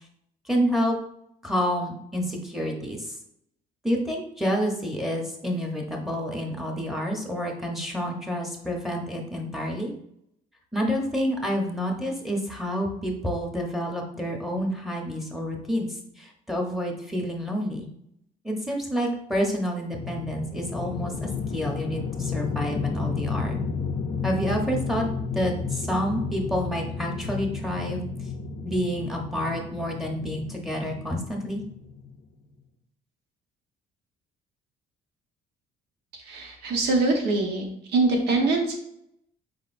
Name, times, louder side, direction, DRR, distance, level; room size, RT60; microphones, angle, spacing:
voice 1, 0.5-1.0 1.4-3.1 3.8-9.9 10.7-17.9 18.4-23.6 24.2-25.1 25.3-28.0 28.6-31.6, equal, ahead, 1 dB, 1.0 m, -28 dB
sound 1, 19.9-32.2, left 5 dB, 35° left, 0.5 m, -32 dB
voice 2, 36.1-37.6 37.9-38.8, right 3 dB, 75° right, 2 dB, 1.2 m, -23 dB
4.7 x 4.0 x 2.6 m, 0.74 s
cardioid pair, 110°, 17 cm